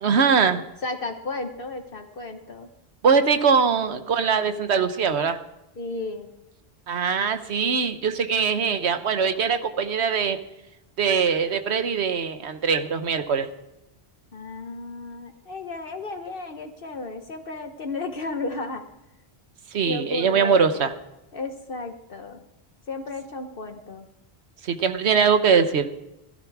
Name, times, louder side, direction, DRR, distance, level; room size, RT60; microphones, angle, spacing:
voice 1, 0.0-0.6 3.0-5.4 6.9-10.4 11.0-13.5 19.7-20.9 24.6-25.9, right 6 dB, 80° right, 10 dB, 1.2 m, -22 dB
voice 2, 0.8-2.7 5.8-6.3 14.3-18.8 19.8-20.9 21.3-22.4 22.9-24.1, left 3 dB, 60° left, 6 dB, 1.2 m, -33 dB
16.5 x 12.5 x 4.7 m, 0.88 s
omnidirectional pair, 1.1 m